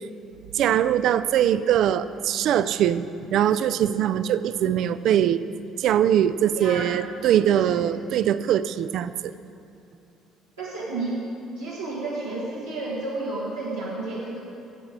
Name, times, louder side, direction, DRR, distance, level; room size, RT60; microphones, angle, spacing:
voice 1, 0.5-3.0 3.3-5.4 5.8-9.3, right 10 dB, 55° right, 14 dB, 0.3 m, -22 dB
voice 2, 6.5-6.9 7.6-7.8 10.6-11.2 11.5-14.4, right 2 dB, 90° right, -10 dB, 1.6 m, -31 dB
9.7 x 7.8 x 6.5 m, 2.7 s
figure-of-eight pair, 50°, 0 cm